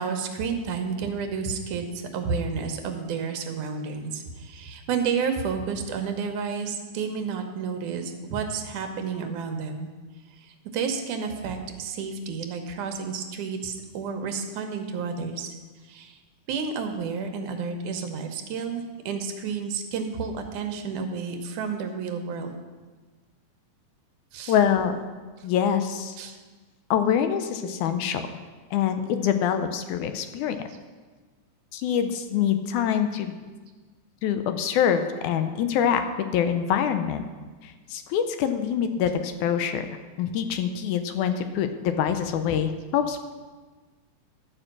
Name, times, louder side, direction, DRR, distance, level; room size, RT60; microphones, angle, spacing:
voice 1, 0.0-9.9 10.7-15.5 15.8-16.2 16.5-22.6 24.3-24.6 26.2-26.4, right 5 dB, 80° right, 5 dB, 2.4 m, -31 dB
voice 2, 24.5-25.0 25.4-26.2 26.9-28.2 28.7-30.6 31.7-33.4 34.2-36.0 36.3-37.2 37.6-39.8 40.2-43.3, left 8 dB, 80° left, 8 dB, 2.1 m, -25 dB
12.0 x 5.3 x 7.3 m, 1.4 s
omnidirectional pair, 3.6 m